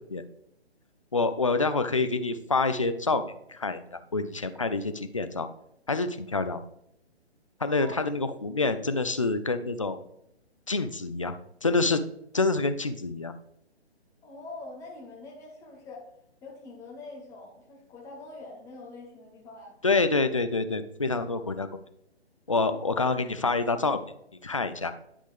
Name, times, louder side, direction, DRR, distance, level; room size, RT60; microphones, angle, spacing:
voice 1, 1.1-3.2 3.5-5.5 5.9-6.6 7.6-10.0 10.7-11.3 11.6-12.0 12.3-13.3 19.8-21.7 22.5-24.0 24.4-24.9, left 3 dB, 30° left, 10 dB, 0.4 m, -27 dB
voice 2, 14.2-16.1 16.4-19.7 22.7-23.2, left 2 dB, 10° left, -2 dB, 1.1 m, -44 dB
10.0 x 5.0 x 3.5 m, 0.79 s
figure-of-eight pair, 140°, 33 cm